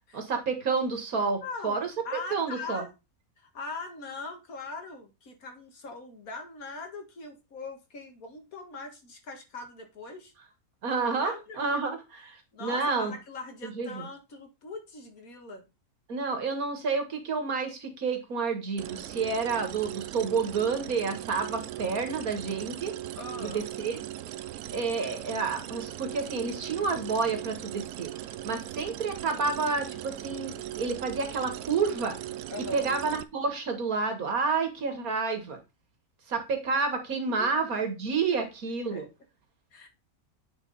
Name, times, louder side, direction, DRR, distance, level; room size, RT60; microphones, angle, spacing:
voice 1, 0.1-2.8 10.8-13.1 13.6-14.1 16.1-22.9 23.4-24.0 24.7-28.1 28.4-32.2 32.6-35.6 36.3-39.1, right 4 dB, 70° right, 2.0 m, -30 dB
voice 2, 1.4-1.8 2.0-2.9 3.4-10.3 11.1-11.6 12.5-15.6 23.2-23.7 32.5-32.9 37.3-37.5 38.9-39.0 39.7-39.9, left 3 dB, 70° left, 2.0 m, -41 dB
sound 1, 18.8-33.2, right 13 dB, 90° right, 1.1 m, -39 dB
8.8 x 4.5 x 3.9 m
omnidirectional pair, 1.6 m